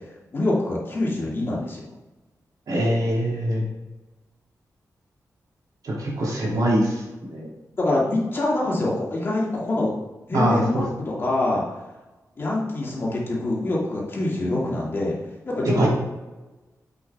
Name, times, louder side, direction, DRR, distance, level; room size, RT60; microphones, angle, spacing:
voice 1, 0.3-1.8 7.8-9.9 10.3-11.6 12.4-15.1 15.4-15.9, left 2 dB, 40° left, -5 dB, 2.5 m, -25 dB
voice 2, 2.7-3.6 5.8-7.0 7.3-7.5 10.3-10.8 15.7-15.9, right 1 dB, 70° right, -4 dB, 2.8 m, -22 dB
7.8 x 7.1 x 3.6 m, 1.1 s
wide cardioid pair, 150°, 6 cm